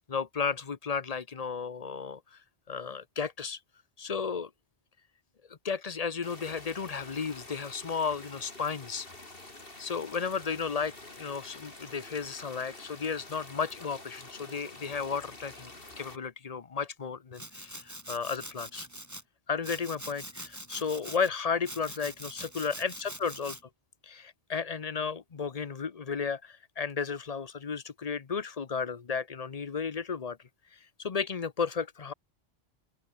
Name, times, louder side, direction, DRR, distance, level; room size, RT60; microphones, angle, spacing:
voice 1, 0.1-2.4 2.7-3.6 4.0-4.5 5.5-9.1 9.8-18.9 19.5-23.6 24.0-30.4 31.0-32.1, left 5 dB, 40° left, 0.8 m, -34 dB
sound 1, 6.2-16.2, left 2 dB, 55° left, 4.0 m, -48 dB
Domestic sounds home sounds, 17.3-19.2 19.6-21.3 21.6-23.6, right 1 dB, 15° right, 4.9 m, -44 dB
omnidirectional pair, 1.1 m